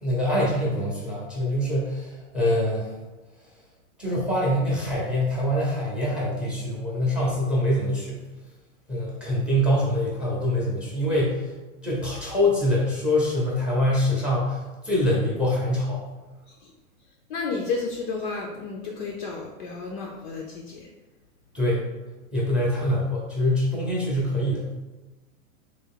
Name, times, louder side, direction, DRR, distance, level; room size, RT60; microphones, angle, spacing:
voice 1, 0.0-2.9 4.0-8.2 8.9-11.5 11.8-16.0 21.5-21.8 22.3-24.7, left 1 dB, ahead, -4 dB, 0.6 m, -24 dB
voice 2, 17.3-20.9, left 4 dB, 40° left, 0 dB, 0.4 m, -32 dB
3.5 x 2.4 x 3.6 m, 1.1 s
hypercardioid pair, 140°, 42 cm